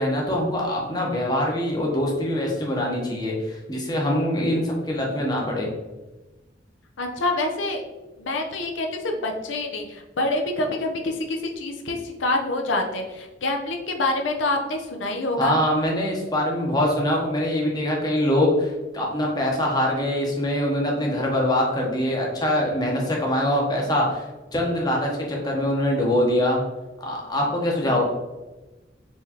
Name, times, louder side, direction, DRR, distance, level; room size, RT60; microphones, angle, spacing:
voice 1, 0.0-5.7 15.4-26.6 27.0-28.0, left 1 dB, 20° left, -2 dB, 0.8 m, -23 dB
voice 2, 7.0-7.8 8.2-15.6 27.8-27.9, left 2 dB, 85° left, 3 dB, 0.6 m, -26 dB
4.5 x 3.1 x 2.8 m, 1.1 s
head